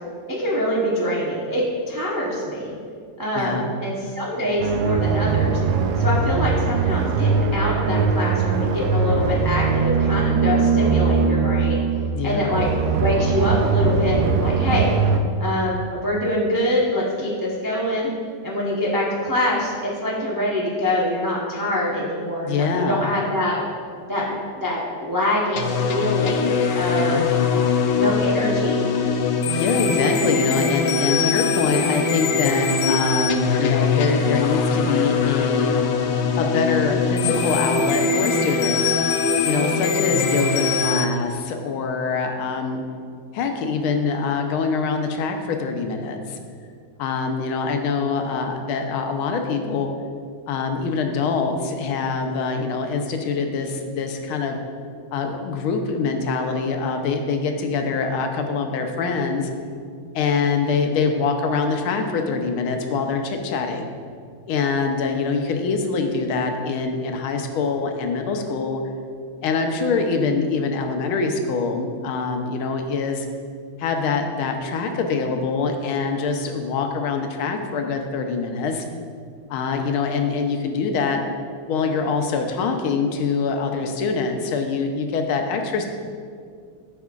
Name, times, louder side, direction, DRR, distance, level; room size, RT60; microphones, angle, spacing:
voice 1, 0.3-2.7 3.2-5.6 6.0-11.8 12.2-12.7 12.9-14.9 15.4-18.1 18.4-23.6 24.1-27.2 28.0-28.9, left 1 dB, 30° right, -5 dB, 0.3 m, -24 dB
voice 2, 3.3-3.7 12.1-12.5 22.4-23.0 27.0-27.3 29.6-35.8 36.3-38.9 39.4-42.8 43.3-46.4 47.0-49.9 50.5-54.6 55.1-59.5 60.1-63.8 64.5-68.8 69.4-73.3 73.8-78.8 79.5-81.2 81.7-85.9, left 4 dB, 90° left, 4 dB, 1.6 m, -24 dB
sound 1, 4.6-15.2, right 5 dB, 75° right, 1.4 m, -21 dB
sound 2, 25.6-41.0, left 5 dB, 70° left, 1.1 m, -22 dB
13.0 x 5.4 x 2.4 m, 2.2 s
omnidirectional pair, 2.2 m